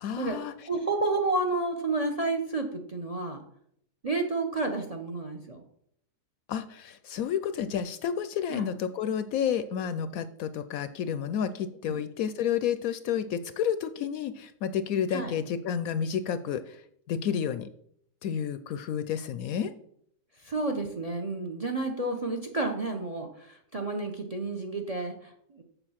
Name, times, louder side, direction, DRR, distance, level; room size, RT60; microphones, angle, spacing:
voice 1, 0.0-0.5 6.5-16.8 17.1-17.7 18.2-19.7, left 8 dB, 70° left, 12 dB, 0.9 m, -30 dB
voice 2, 0.6-3.4 4.0-5.6 8.5-8.7 11.9-12.0 15.1-15.3 20.4-25.6, right 2 dB, 30° right, 5 dB, 0.7 m, -30 dB
7.1 x 6.8 x 5.7 m, 0.69 s
omnidirectional pair, 1.7 m